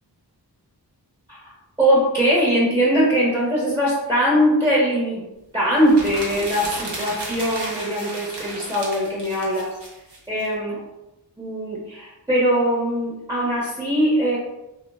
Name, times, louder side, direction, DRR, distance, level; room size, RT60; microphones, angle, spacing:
voice 1, 1.8-5.2 5.5-9.7 10.3-10.8 11.4-14.4, equal, 10° right, -5 dB, 0.7 m, -21 dB
sound 1, 5.8-10.5, right 1 dB, 70° right, 0.8 m, -34 dB
2.7 x 2.1 x 3.3 m, 0.96 s
wide cardioid pair, 80°, 42 cm